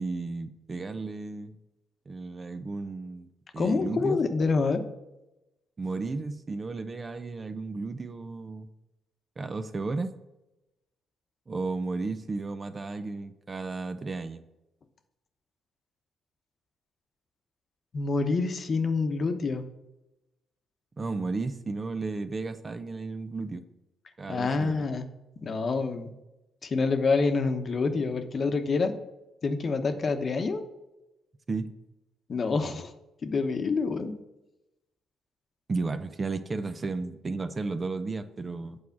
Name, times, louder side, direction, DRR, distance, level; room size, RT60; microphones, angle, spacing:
voice 1, 0.0-1.6 2.1-4.2 5.8-8.7 9.4-10.1 11.5-14.4 21.0-23.6 24.2-24.9 31.5-31.7 35.7-38.8, right 3 dB, 30° right, 9 dB, 0.6 m, -33 dB
voice 2, 3.6-4.8 17.9-19.6 24.3-25.0 25.4-26.1 26.6-28.9 29.4-30.6 32.3-32.9 33.2-34.1, left 4 dB, 45° left, 7 dB, 1.0 m, -27 dB
8.3 x 4.7 x 7.2 m, 0.95 s
cardioid pair, 90°, 0 cm